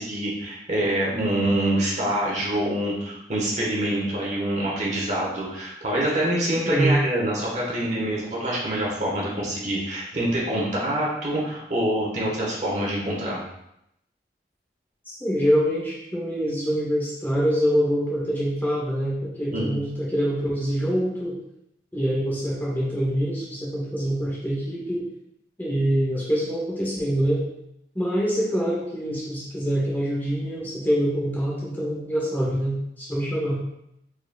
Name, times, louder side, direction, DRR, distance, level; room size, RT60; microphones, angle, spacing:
voice 1, 0.0-13.4 19.5-19.7, right 1 dB, 40° right, -4 dB, 1.3 m, -25 dB
voice 2, 6.7-7.0 15.1-21.4 21.9-25.1 25.6-27.4 27.9-33.6, equal, 10° left, -5 dB, 0.8 m, -25 dB
4.7 x 4.4 x 2.3 m, 0.80 s
head